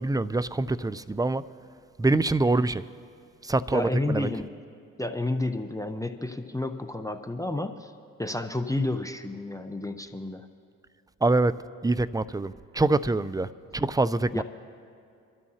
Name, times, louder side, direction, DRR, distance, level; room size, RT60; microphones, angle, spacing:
voice 1, 0.0-1.4 2.0-2.8 3.4-4.3 11.2-11.6 11.8-13.5 13.7-14.4, right 2 dB, 10° right, 0.5 m, -25 dB
voice 2, 3.7-4.5 5.0-7.9 8.2-10.5 14.3-14.4, left 2 dB, 10° left, 0.9 m, -30 dB
25.5 x 12.5 x 2.9 m
hypercardioid pair, 40°, 37 cm